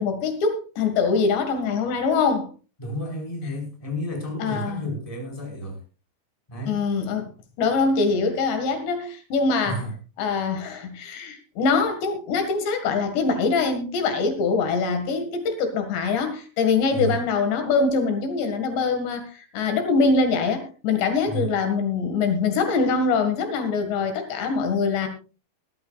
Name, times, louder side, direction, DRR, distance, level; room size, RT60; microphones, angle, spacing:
voice 1, 0.0-2.5 4.4-4.8 6.7-7.3 7.6-9.8 10.2-25.1, left 4 dB, 75° left, 7 dB, 4.1 m, -23 dB
voice 2, 2.8-5.8 6.5-6.8 9.6-9.9 16.9-17.2 21.3-21.5, equal, 10° left, 1 dB, 4.4 m, -31 dB
21.5 x 13.0 x 2.4 m, 0.34 s
omnidirectional pair, 5.1 m